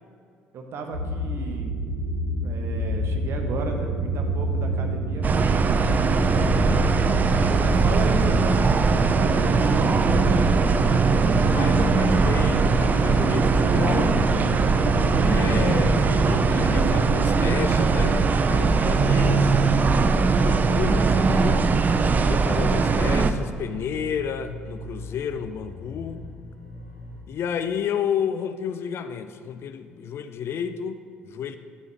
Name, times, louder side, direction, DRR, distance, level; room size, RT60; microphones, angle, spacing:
voice 1, 0.5-1.8 2.4-6.9 7.6-10.5, right 4 dB, 45° right, 4 dB, 1.0 m, -34 dB
sound 1, 0.9-16.9, right 1 dB, 75° right, 1.1 m, -28 dB
sound 2, 5.2-23.3, right 4 dB, 30° right, 0.5 m, -20 dB
voice 2, 11.4-14.2 15.2-19.5 20.4-21.6 22.1-26.2 27.3-31.6, left 8 dB, 45° left, 10 dB, 0.5 m, -31 dB
sound 3, 13.2-27.2, equal, 70° left, 2.0 m, -40 dB
9.4 x 7.3 x 3.3 m, 2.2 s
figure-of-eight pair, 55°, 6 cm